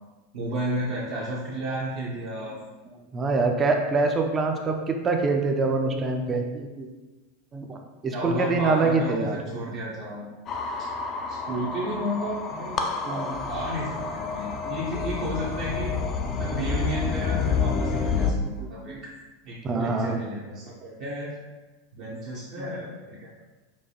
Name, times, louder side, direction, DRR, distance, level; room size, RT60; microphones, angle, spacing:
voice 1, 0.3-2.6 8.1-10.2 11.3-15.9 16.4-18.9 19.4-21.3 21.9-23.3, right 1 dB, 60° right, -6 dB, 0.7 m, -32 dB
voice 2, 3.1-6.9 7.5-7.8 8.0-9.4 13.1-13.3 14.7-14.8 18.9-19.0 19.6-20.2 22.6-22.7, right 3 dB, 25° right, 3 dB, 0.4 m, -25 dB
sound 1, 10.5-18.3, left 5 dB, 40° left, 0.4 m, -29 dB
4.5 x 2.2 x 2.8 m, 1.2 s
hypercardioid pair, 95°, 0 cm